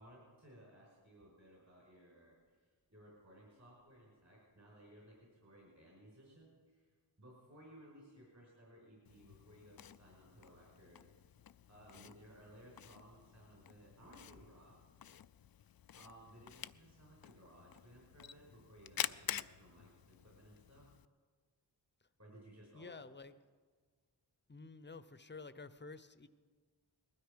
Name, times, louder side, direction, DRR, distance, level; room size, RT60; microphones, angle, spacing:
voice 1, 0.0-11.1 11.7-14.8 15.9-20.9 22.2-23.0, right 1 dB, 40° right, -4 dB, 5.0 m, -60 dB
Camera, 9.0-21.0, left 9 dB, 60° left, 0.5 m, -49 dB
voice 2, 22.7-23.3 24.5-26.3, left 3 dB, 25° left, 13 dB, 0.7 m, -51 dB
20.0 x 13.0 x 5.1 m, 1.5 s
wide cardioid pair, 65°, 42 cm